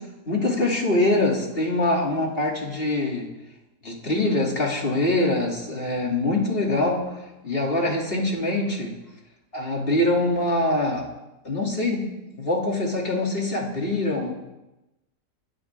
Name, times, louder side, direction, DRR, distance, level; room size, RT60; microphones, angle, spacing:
voice 1, 0.3-3.3 3.8-7.0 7.4-8.9 9.5-11.1 11.4-12.0 12.3-14.3, left 2 dB, 35° left, -1 dB, 3.2 m, -24 dB
23.5 x 12.5 x 3.7 m, 0.99 s
omnidirectional pair, 1.8 m